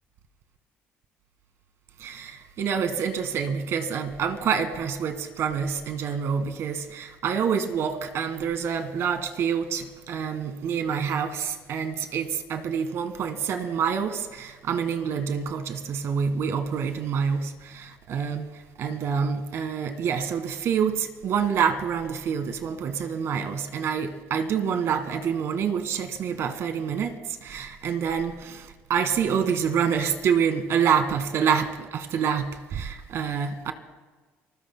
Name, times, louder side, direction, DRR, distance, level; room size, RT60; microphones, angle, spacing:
voice 1, 2.0-33.7, right 7 dB, 60° right, 1.6 m, -27 dB
29.0 x 20.0 x 2.2 m
cardioid pair, 90°, 5 cm